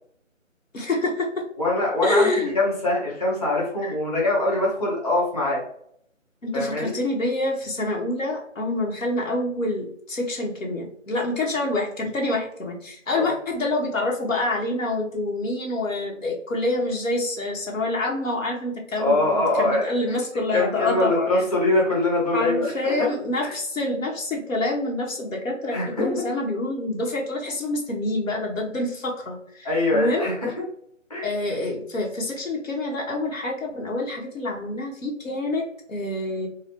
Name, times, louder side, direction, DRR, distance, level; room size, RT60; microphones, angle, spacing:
voice 1, 0.7-1.4 2.0-2.5 3.8-3.9 6.4-21.4 22.3-30.3 31.2-35.6 35.9-36.5, left 2 dB, 75° left, -1 dB, 1.4 m, -27 dB
voice 2, 1.6-2.3 2.5-5.6 6.5-6.9 13.2-13.3 19.0-20.1 20.5-23.1 25.7-26.1 29.6-30.5 31.1-31.3, left 2 dB, 30° left, -6 dB, 1.4 m, -23 dB
4.0 x 2.4 x 3.1 m, 0.68 s
figure-of-eight pair, 175°, 40 cm